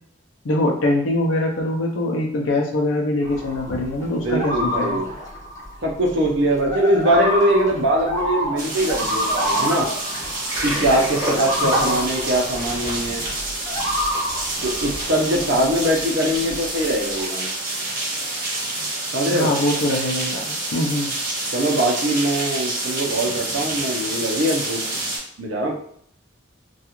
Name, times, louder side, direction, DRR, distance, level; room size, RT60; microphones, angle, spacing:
voice 1, 0.4-5.0 11.8-12.0 19.3-21.1, left 1 dB, 70° left, 0 dB, 0.5 m, -23 dB
sound 1, 3.2-16.0 16.3-17.2, equal, 15° left, 0.6 m, -29 dB
voice 2, 4.0-5.1 5.8-9.9 10.6-13.2 14.6-17.5 19.1-19.5 21.5-24.8 25.4-25.8, right 1 dB, 60° right, -1 dB, 0.6 m, -22 dB
sound 2, 8.6-25.2, right 2 dB, 45° right, 1.1 m, -28 dB
Water, 10.3-13.5, equal, 20° right, 0.8 m, -28 dB
2.4 x 2.3 x 2.9 m, 0.66 s
head